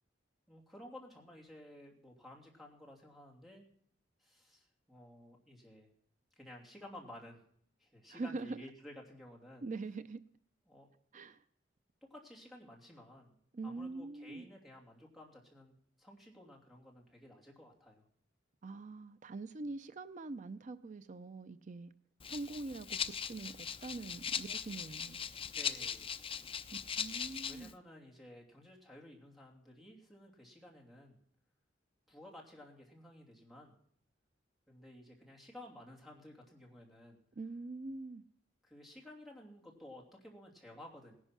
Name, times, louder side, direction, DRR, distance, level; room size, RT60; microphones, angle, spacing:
voice 1, 0.5-3.6 4.2-5.9 6.4-7.4 7.8-9.6 10.7-10.9 12.0-13.4 13.6-15.7 16.0-18.0 25.5-26.1 27.3-31.2 32.1-33.8 34.7-37.2 38.6-41.2, left 1 dB, ahead, 2.8 m, -54 dB
voice 2, 8.1-8.6 9.6-10.2 11.1-11.4 13.5-14.5 18.6-21.9 22.3-25.3 26.7-27.7 37.4-38.2, right 3 dB, 40° right, 0.5 m, -44 dB
Rattle (instrument), 22.2-27.7, left 7 dB, 30° left, 0.6 m, -40 dB
17.5 x 11.0 x 6.0 m
head